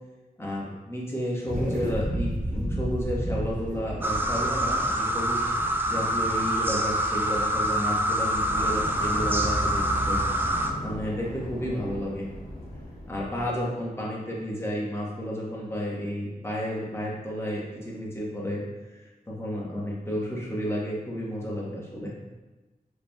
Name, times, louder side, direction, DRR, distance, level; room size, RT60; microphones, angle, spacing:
voice 1, 0.4-5.5 5.9-10.2 10.8-12.3 13.1-22.1, equal, 15° left, -5 dB, 1.0 m, -32 dB
sound 1, 1.5-6.1, equal, 55° right, 1.1 m, -31 dB
sound 2, 4.0-10.7, right 1 dB, 15° right, 0.3 m, -26 dB
Fire, 8.3-13.6, equal, 80° left, 0.9 m, -38 dB
4.8 x 3.2 x 2.3 m, 1.1 s
wide cardioid pair, 85°, 16 cm